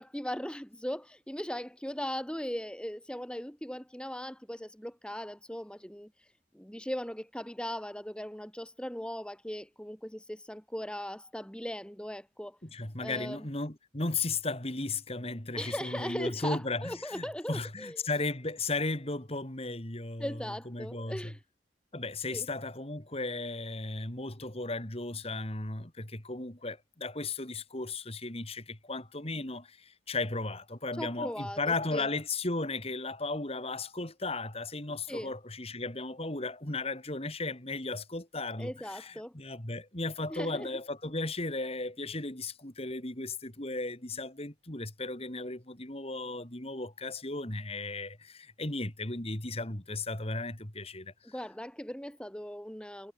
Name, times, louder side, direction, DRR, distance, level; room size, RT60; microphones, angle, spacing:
voice 1, 0.0-6.1 6.5-12.6 13.0-13.4 15.5-18.0 20.2-21.4 22.3-22.5 31.0-32.1 35.1-35.3 38.6-39.3 40.3-40.7 51.2-53.1, equal, 5° left, 2.2 m, -38 dB
voice 2, 12.6-21.3 21.9-51.1, left 3 dB, 30° left, 3.1 m, -35 dB
head